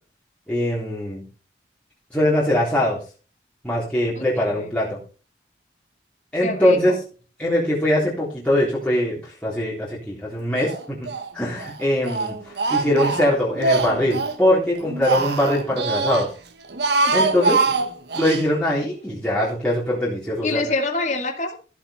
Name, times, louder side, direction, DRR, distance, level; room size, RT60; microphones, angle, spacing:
voice 1, 0.5-1.2 2.1-3.0 3.6-5.0 6.3-7.0 7.4-11.1 11.3-16.3 17.1-17.7 18.2-20.6, left 1 dB, 5° left, -7 dB, 3.6 m, -22 dB
voice 2, 4.2-4.7 6.4-7.0 17.0-17.7 20.4-21.5, left 2 dB, 40° left, 4 dB, 2.3 m, -27 dB
Speech, 10.6-11.3 11.6-14.4 14.8-16.3 16.6-18.4, right 3 dB, 65° right, 1.4 m, -23 dB
14.5 x 8.2 x 4.4 m, 0.37 s
head